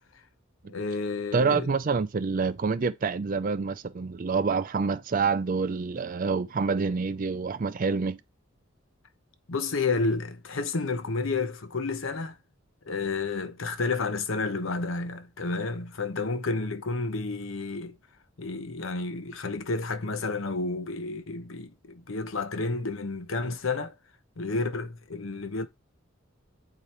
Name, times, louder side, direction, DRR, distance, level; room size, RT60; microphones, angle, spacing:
voice 1, 0.7-1.7 9.5-12.4 12.8-18.0 18.4-23.9 24.4-25.7, left 3 dB, 75° left, 0.9 m, -31 dB
voice 2, 1.3-8.2, right 4 dB, 40° right, 0.4 m, -27 dB
8.4 x 4.9 x 4.3 m
head